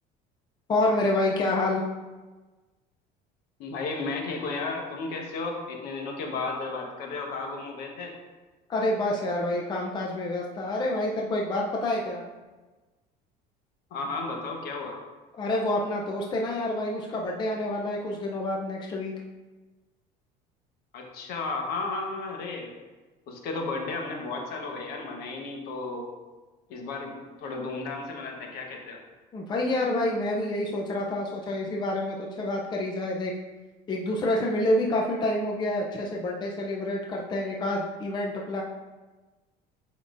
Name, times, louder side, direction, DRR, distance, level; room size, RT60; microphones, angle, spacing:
voice 1, 0.7-1.8 8.7-12.2 15.4-19.1 29.3-33.3 33.9-38.6, left 1 dB, 25° left, -1 dB, 0.6 m, -28 dB
voice 2, 3.6-8.1 13.9-15.0 20.9-22.7 23.3-26.1 26.7-29.0, left 3 dB, 65° left, 1 dB, 1.2 m, -33 dB
7.3 x 5.3 x 2.6 m, 1.2 s
cardioid pair, 140°, 18 cm